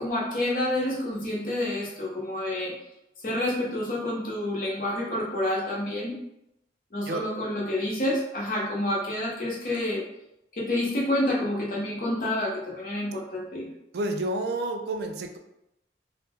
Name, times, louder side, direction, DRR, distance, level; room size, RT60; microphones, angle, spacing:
voice 1, 0.0-2.7 3.2-6.1 6.9-10.0 10.5-13.7, left 1 dB, 50° left, -4 dB, 0.8 m, -28 dB
voice 2, 13.9-15.4, right 2 dB, 65° right, 5 dB, 0.3 m, -30 dB
2.7 x 2.1 x 3.5 m, 0.85 s
head